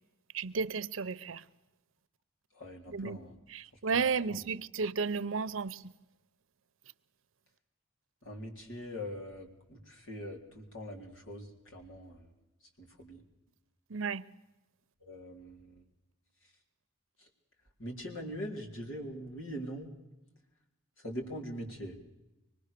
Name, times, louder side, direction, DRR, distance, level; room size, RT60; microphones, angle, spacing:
voice 1, 0.3-1.4 2.9-3.2 3.5-5.9 13.9-14.3, right 5 dB, 85° right, 0.7 m, -33 dB
voice 2, 2.5-3.3 3.9-4.0 4.3-4.4 8.2-12.3 12.8-13.2 15.1-15.8 17.2-17.3 17.8-19.9 21.0-22.0, equal, 85° left, 3.9 m, -42 dB
24.5 x 19.5 x 6.7 m
head